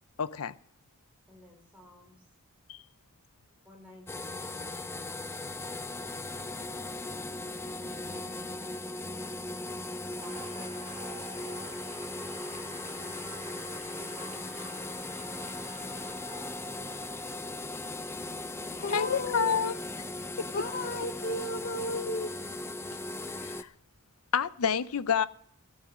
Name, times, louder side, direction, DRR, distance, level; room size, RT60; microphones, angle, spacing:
voice 1, 0.2-0.5 2.7-2.8 18.9-19.8 23.3-23.7 24.3-25.3, left 7 dB, 80° left, 0.6 m, -28 dB
voice 2, 1.3-2.3 3.6-4.6 4.8-5.8 7.9-8.7 10.0-11.7 15.9-16.7, left 1 dB, 5° right, 4.2 m, -54 dB
sound 1, 4.1-23.6, left 2 dB, 10° left, 0.4 m, -38 dB
sound 2, 10.2-17.4, right 4 dB, 30° right, 2.2 m, -50 dB
voice 3, 18.8-19.6 20.5-22.3, left 1 dB, 45° left, 0.8 m, -34 dB
14.5 x 9.6 x 6.1 m
head